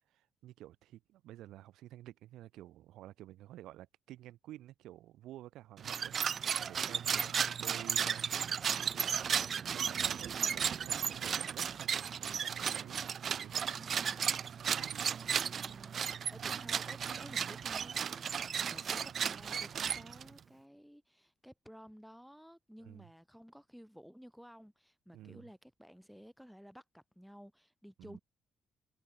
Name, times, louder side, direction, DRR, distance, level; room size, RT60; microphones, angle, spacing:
voice 1, 0.1-13.0 13.3-13.6 14.7-15.2 16.4-16.6 22.8-23.1 25.1-25.4 28.0-28.2, right 14 dB, 85° right, 0.8 m, -52 dB
sound 1, 5.8-20.4, right 7 dB, 55° right, 0.5 m, -35 dB
voice 2, 13.8-14.4 15.2-28.2, equal, ahead, 1.7 m, -54 dB
cardioid pair, 90°, 0 cm